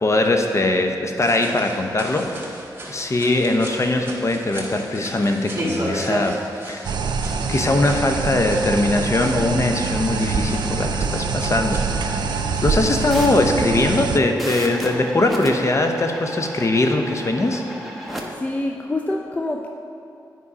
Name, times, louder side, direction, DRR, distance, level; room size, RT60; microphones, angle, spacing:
voice 1, 0.0-2.3 2.9-6.9 7.5-12.3 12.6-17.6, left 2 dB, 40° left, 4 dB, 0.9 m, -21 dB
sound 1, 1.1-13.4, right 1 dB, 30° right, 1.9 m, -35 dB
sound 2, 6.8-14.2, right 5 dB, 65° right, 0.4 m, -25 dB
sound 3, 13.1-18.2, equal, ahead, 1.2 m, -35 dB
voice 2, 18.4-19.7, left 2 dB, 20° left, 2 dB, 0.5 m, -26 dB
8.7 x 5.4 x 4.9 m, 2.6 s
cardioid pair, 60°, 8 cm